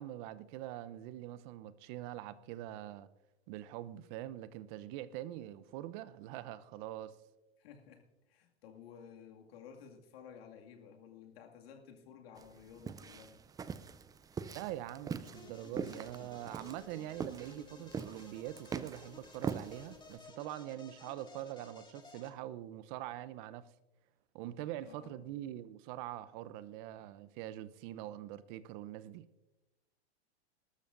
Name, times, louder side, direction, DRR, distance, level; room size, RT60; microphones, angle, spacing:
voice 1, 0.0-3.1 3.5-7.2 14.5-23.7 24.3-29.3, right 13 dB, 45° right, 0.8 m, -44 dB
voice 2, 7.6-13.4 24.8-25.3, left 7 dB, 65° left, 2.3 m, -54 dB
sound 1, 12.4-20.2, right 6 dB, 10° right, 0.4 m, -43 dB
sound 2, 15.2-22.3, left 3 dB, 15° left, 2.0 m, -55 dB
20.0 x 13.0 x 2.6 m
hypercardioid pair, 105°, 32 cm